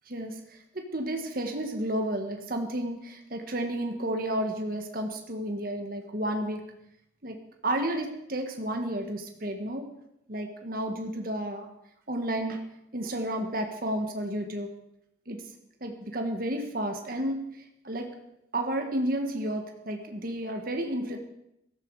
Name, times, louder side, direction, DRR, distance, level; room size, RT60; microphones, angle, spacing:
voice 1, 0.1-6.6 7.2-7.4 7.6-9.9 10.3-11.7 12.1-12.6 12.9-14.7 15.3-15.4 15.8-17.4 17.8-18.1 18.5-21.2, right 1 dB, 50° right, 4 dB, 1.7 m, -31 dB
16.5 x 14.0 x 4.9 m, 0.82 s
head